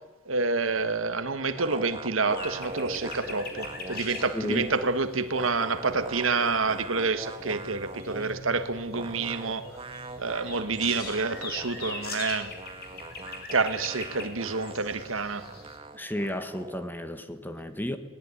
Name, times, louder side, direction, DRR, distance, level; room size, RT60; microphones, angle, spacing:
voice 1, 0.3-9.7 10.2-12.5 13.5-15.5, right 4 dB, 90° right, 1.6 m, -28 dB
sound 1, 1.6-4.9 5.1-8.4 8.9-16.9, right 2 dB, 30° right, 1.4 m, -42 dB
sound 2, 2.4-15.8, left 3 dB, 50° left, 4.6 m, -42 dB
voice 2, 4.3-4.7 16.0-18.0, left 1 dB, 10° left, 1.6 m, -32 dB
21.0 x 19.0 x 9.9 m
head